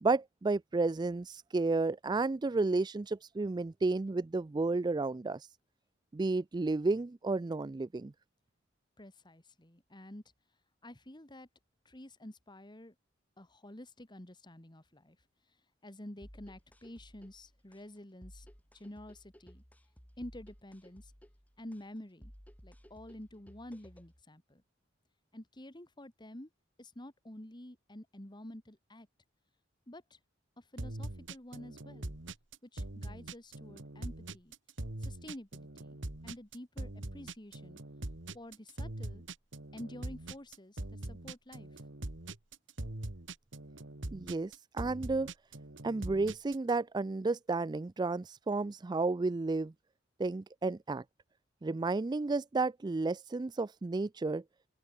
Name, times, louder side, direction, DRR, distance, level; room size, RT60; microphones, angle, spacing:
voice 1, 0.0-5.5 6.1-8.1 44.1-45.3 45.8-49.7 50.2-51.0 51.6-54.4, right 3 dB, 20° right, 0.3 m, -32 dB
voice 2, 9.0-10.2 10.8-11.5 11.9-12.9 13.4-15.2 15.8-18.5 18.7-19.6 20.2-21.1 21.6-22.3 22.6-24.6 25.3-26.5 26.8-29.1 29.9-30.2 30.6-32.1 32.6-34.6 35.0-36.0 36.2-37.8 38.3-39.2 39.7-41.8, left 1 dB, 25° left, 2.1 m, -49 dB
sound 1, 16.2-24.2, equal, 10° left, 3.3 m, -57 dB
sound 2, 30.8-46.7, right 1 dB, 65° right, 2.0 m, -42 dB
open air
head